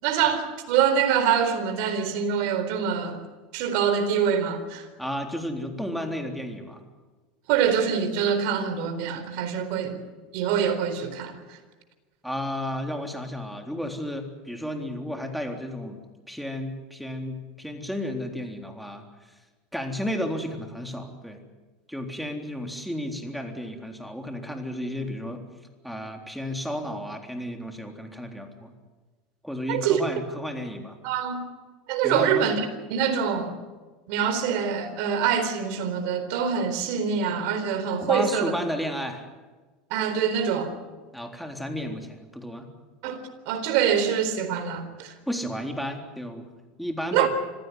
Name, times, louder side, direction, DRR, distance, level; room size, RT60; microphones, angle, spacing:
voice 1, 0.0-3.2 3.5-4.9 7.5-10.1 10.3-11.6 29.7-30.0 31.0-31.4 31.9-32.6 32.9-33.6 34.1-38.5 39.9-40.7 43.0-45.1 47.1-47.3, right 8 dB, 65° right, 9 dB, 4.1 m, -25 dB
voice 2, 5.0-6.8 12.2-16.0 16.3-19.1 19.7-21.4 21.9-25.4 25.8-28.7 29.4-31.0 32.0-32.4 38.0-39.2 41.1-42.7 45.3-46.5 46.8-47.3, equal, ahead, 4 dB, 3.7 m, -32 dB
26.0 x 15.5 x 9.7 m, 1.3 s
supercardioid pair, 110°, 4 cm